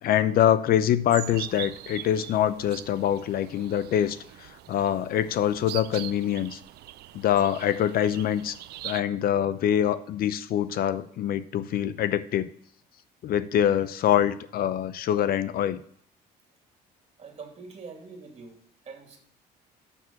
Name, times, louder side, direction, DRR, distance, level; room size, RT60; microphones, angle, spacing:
voice 1, 0.0-6.6 7.1-8.5 8.8-12.5 13.2-15.8, left 10 dB, 60° left, 15 dB, 0.7 m, -25 dB
sound 1, 1.1-9.0, right 14 dB, 75° right, 0.5 m, -42 dB
voice 2, 17.2-18.6 18.8-19.2, right 4 dB, 40° right, 2 dB, 2.6 m, -44 dB
7.1 x 6.2 x 7.0 m, 0.62 s
cardioid pair, 110°, 17 cm